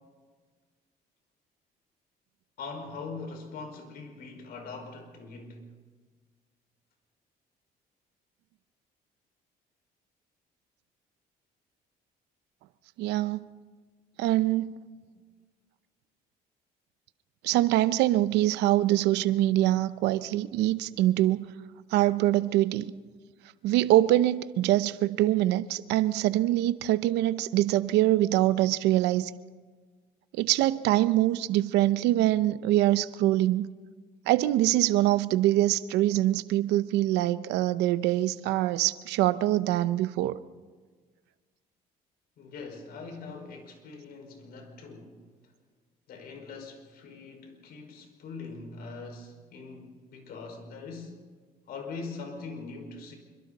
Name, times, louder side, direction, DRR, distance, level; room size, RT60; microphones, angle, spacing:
voice 1, 2.6-5.6 42.4-45.2 46.1-51.2 51.7-53.2, left 4 dB, 65° left, 3 dB, 5.3 m, -42 dB
voice 2, 13.0-13.5 14.2-14.8 17.4-21.5 21.9-22.9 23.6-29.3 30.3-33.7 34.3-40.4, right 15 dB, 90° right, 14 dB, 0.8 m, -24 dB
27.0 x 24.5 x 4.2 m, 1.5 s
cardioid pair, 110°, 17 cm